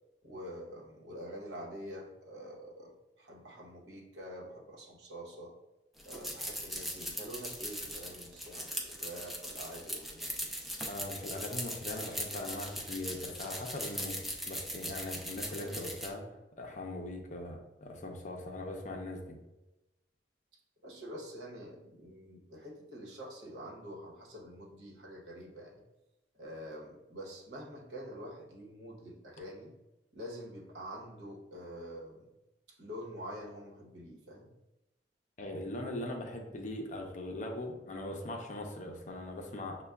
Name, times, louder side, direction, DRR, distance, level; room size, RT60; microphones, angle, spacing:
voice 1, 0.2-2.9 3.2-5.5 6.0-10.5 20.8-25.8 26.4-29.7 30.1-32.2 32.8-34.5, equal, 80° right, -2 dB, 1.0 m, -46 dB
sound 1, 6.0-16.1, equal, ahead, 0.4 m, -40 dB
voice 2, 10.9-14.2 14.5-16.3 16.6-19.2 35.4-39.8, left 1 dB, 45° left, 2 dB, 0.6 m, -40 dB
6.4 x 2.2 x 2.3 m, 1.0 s
head